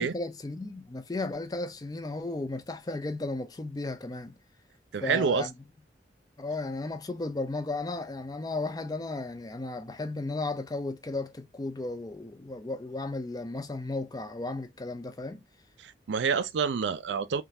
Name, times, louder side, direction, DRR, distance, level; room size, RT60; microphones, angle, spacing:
voice 1, 0.0-4.3 5.0-5.5 6.4-15.4, left 2 dB, 20° left, 0.4 m, -34 dB
voice 2, 4.9-5.4 15.8-17.4, right 6 dB, 90° right, 0.4 m, -27 dB
3.7 x 2.4 x 2.6 m
head